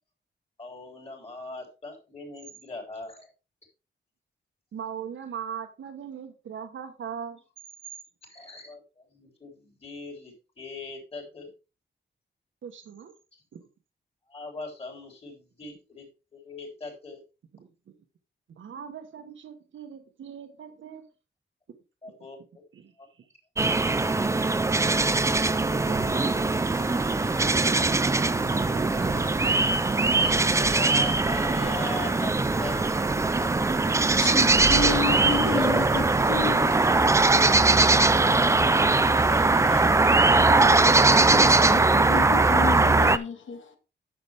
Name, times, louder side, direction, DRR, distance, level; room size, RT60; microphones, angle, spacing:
voice 1, 0.6-3.3 8.3-11.5 13.3-13.4 14.3-16.1 16.3-17.2 22.0-22.6 23.0-23.1 23.9-24.6 29.1-29.5 30.1-32.3 32.6-33.0 37.4-37.8 38.1-38.4 38.9-40.2, left 2 dB, 30° left, 3.6 m, -40 dB
voice 2, 4.7-7.4 12.6-13.1 13.5-13.6 17.5-17.7 18.5-21.0 22.7-23.3 24.2-24.4, right 8 dB, 80° right, 1.2 m, -41 dB
sound 1, 23.6-43.2, right 3 dB, 15° right, 0.4 m, -21 dB
sound 2, 25.1-41.4, right 5 dB, 45° right, 1.4 m, -39 dB
voice 3, 33.9-36.7 41.1-43.8, left 5 dB, 85° left, 1.7 m, -32 dB
9.9 x 6.9 x 3.4 m
wide cardioid pair, 145°, 20 cm